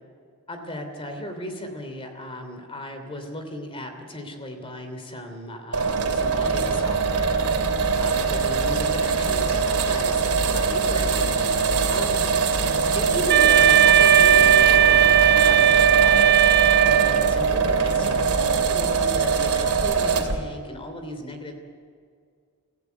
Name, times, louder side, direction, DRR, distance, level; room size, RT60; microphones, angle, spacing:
voice 1, 0.5-7.4 8.0-12.3 12.9-16.4 16.8-21.6, left 1 dB, 25° left, 6 dB, 3.0 m, -35 dB
sound 1, 5.7-20.4, right 5 dB, 90° right, 3.0 m, -22 dB
Wind instrument woodwind instrument, 13.3-17.5, right 10 dB, 50° right, 0.8 m, -16 dB
27.0 x 15.5 x 8.3 m, 2.1 s
head